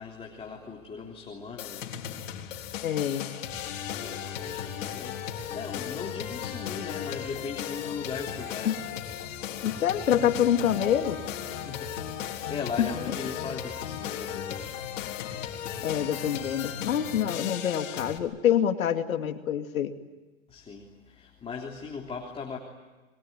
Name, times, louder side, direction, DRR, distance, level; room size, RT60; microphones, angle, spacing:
voice 1, 0.0-2.0 4.0-8.8 11.4-11.9 12.2-14.8 20.5-22.6, left 5 dB, 15° left, 0 dB, 3.4 m, -39 dB
sound 1, 1.6-18.2, left 9 dB, 65° left, 3.8 m, -36 dB
voice 2, 2.8-3.3 8.6-8.8 9.6-11.2 12.8-13.1 15.8-19.9, left 9 dB, 85° left, 6 dB, 2.5 m, -26 dB
27.0 x 22.5 x 9.5 m, 1.2 s
hypercardioid pair, 135°, 41 cm